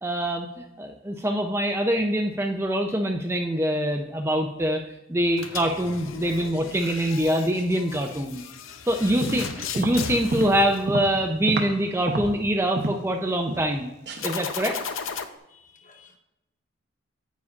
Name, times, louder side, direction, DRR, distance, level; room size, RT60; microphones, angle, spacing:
voice 1, 0.0-4.8 5.1-8.4 8.9-13.9 14.2-14.7, equal, 10° right, 2 dB, 0.5 m, -24 dB
sound 1, 5.3-11.5 14.2-15.2, left 6 dB, 80° left, 0.6 m, -36 dB
sound 2, 9.0-11.8 12.1-13.1 13.5-13.8 14.1-14.2, right 2 dB, 55° right, 0.8 m, -30 dB
voice 2, 15.5-16.2, left 5 dB, 40° left, 4 dB, 0.9 m, -55 dB
9.5 x 8.3 x 2.5 m, 0.92 s
head